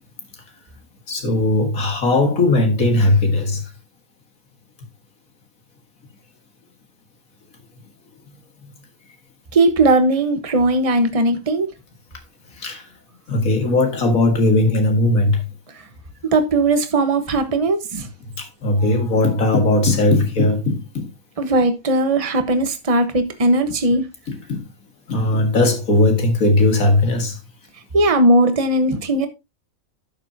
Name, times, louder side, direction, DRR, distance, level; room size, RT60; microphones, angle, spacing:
voice 1, 1.1-3.7 8.6-8.7 12.5-12.9 13.3-15.4 18.4-21.1 24.3-24.6 25.1-27.4, left 2 dB, 75° left, 2.2 m, -18 dB
voice 2, 9.5-11.7 16.2-18.1 21.4-24.1 27.9-29.3, right 2 dB, 25° right, 1.2 m, -18 dB
11.5 x 7.5 x 2.8 m
omnidirectional pair, 1.4 m